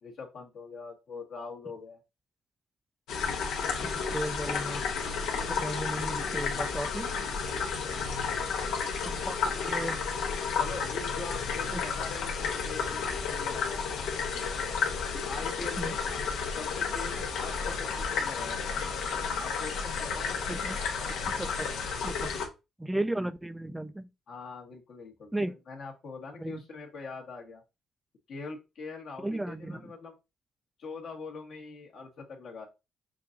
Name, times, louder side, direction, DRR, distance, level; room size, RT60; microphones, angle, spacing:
voice 1, 0.0-2.0 10.6-14.7 15.1-16.2 16.5-18.8 19.4-20.8 24.3-25.3 25.7-27.6 28.3-30.2 30.8-32.7, left 4 dB, 70° left, 1.8 m, -43 dB
sound 1, 3.1-22.5, left 5 dB, 85° left, 1.1 m, -32 dB
voice 2, 3.8-4.8 5.4-7.1 9.0-10.0 11.7-11.8 15.8-16.0 20.5-21.7 22.0-22.4 22.8-24.1 25.3-25.5 26.4-26.6 29.2-29.9, right 1 dB, 10° right, 0.3 m, -35 dB
6.8 x 2.6 x 2.8 m
cardioid pair, 90°, 0 cm